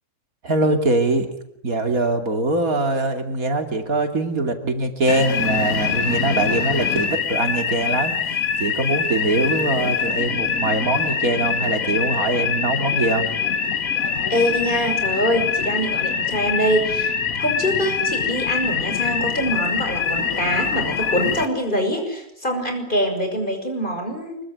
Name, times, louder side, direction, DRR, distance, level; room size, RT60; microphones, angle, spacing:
voice 1, 0.4-1.3 1.6-13.3, right 2 dB, 75° right, 6 dB, 3.3 m, -22 dB
sound 1, 5.1-21.5, left 6 dB, 75° left, 1.9 m, -24 dB
voice 2, 14.3-24.4, equal, 35° left, 5 dB, 6.2 m, -24 dB
25.0 x 23.0 x 9.8 m, 0.77 s
omnidirectional pair, 1.5 m